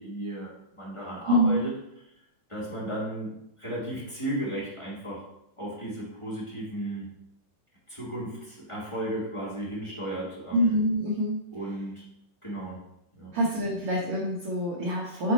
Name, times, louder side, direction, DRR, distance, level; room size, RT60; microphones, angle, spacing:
voice 1, 0.0-1.7 2.5-5.3 5.6-7.1 7.9-10.6 11.5-12.0 12.4-12.8 13.1-13.3, right 1 dB, 15° left, -6 dB, 1.1 m, -35 dB
voice 2, 1.3-1.7 10.5-11.4 13.3-15.3, equal, 80° right, -2 dB, 1.2 m, -25 dB
7.7 x 4.0 x 4.2 m, 0.80 s
omnidirectional pair, 3.9 m